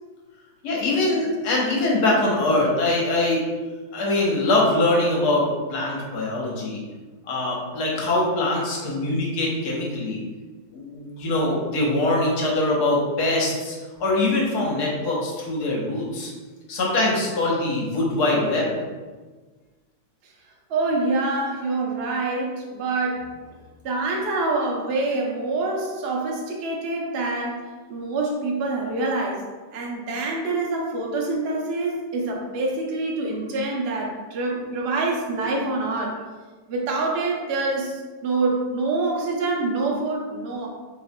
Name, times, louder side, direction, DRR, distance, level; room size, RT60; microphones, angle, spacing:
voice 1, 0.6-3.5 3.9-6.8 7.3-10.2 10.7-16.3 16.7-18.7, left 2 dB, 60° left, -3 dB, 1.4 m, -23 dB
voice 2, 20.7-23.5 23.8-27.6 27.9-29.4 29.7-36.2 36.7-40.7, right 2 dB, 80° right, -2 dB, 0.5 m, -26 dB
5.5 x 3.3 x 2.2 m, 1.3 s
omnidirectional pair, 2.1 m